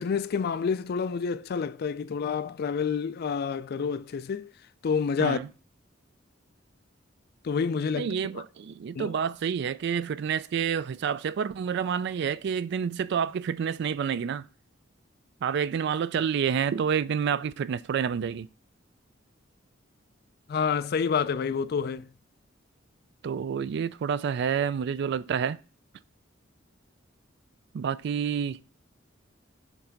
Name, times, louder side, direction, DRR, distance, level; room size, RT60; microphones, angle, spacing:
voice 1, 0.0-4.5 4.8-5.4 7.4-8.4 8.9-9.1 20.5-22.1, left 6 dB, 55° left, 0.4 m, -28 dB
voice 2, 7.9-14.5 15.4-18.5 23.2-25.6 27.7-28.6, right 7 dB, 60° right, 0.3 m, -28 dB
7.1 x 3.3 x 5.1 m
head